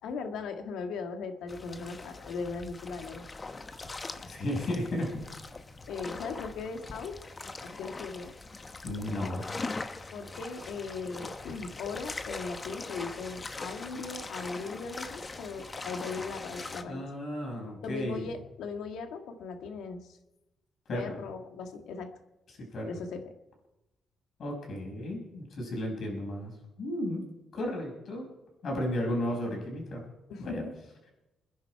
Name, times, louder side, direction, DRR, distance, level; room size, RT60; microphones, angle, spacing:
voice 1, 0.0-3.2 4.8-5.0 5.2-5.3 5.9-7.2 7.6-8.3 10.1-17.0 17.8-20.2 20.9-22.1 22.8-23.3 30.3-30.7, left 4 dB, 80° left, 6 dB, 1.8 m, -38 dB
sound 1, 1.5-16.8, left 3 dB, 25° left, 1.0 m, -41 dB
voice 2, 4.2-5.1 8.8-9.5 16.8-18.3 20.9-21.0 22.7-22.9 24.4-26.5 26.8-27.2 27.5-28.3 28.6-30.0 30.4-30.6, left 1 dB, 50° left, 0 dB, 5.7 m, -33 dB
23.5 x 10.5 x 4.8 m, 0.97 s
cardioid pair, 135°, 0 cm